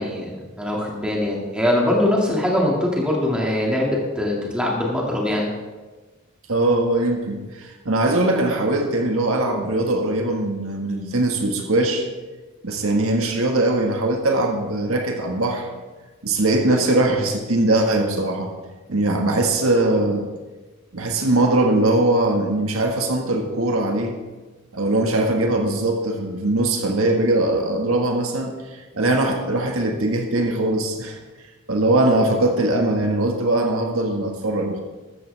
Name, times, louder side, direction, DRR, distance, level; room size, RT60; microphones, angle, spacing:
voice 1, 0.0-5.5, left 1 dB, 5° right, -3 dB, 2.2 m, -22 dB
voice 2, 6.5-12.1 12.6-15.7 16.2-18.5 18.9-20.3 20.9-24.2 24.7-31.2 31.7-34.8, right 2 dB, 75° right, 2 dB, 1.7 m, -21 dB
14.0 x 13.5 x 3.5 m, 1.3 s
head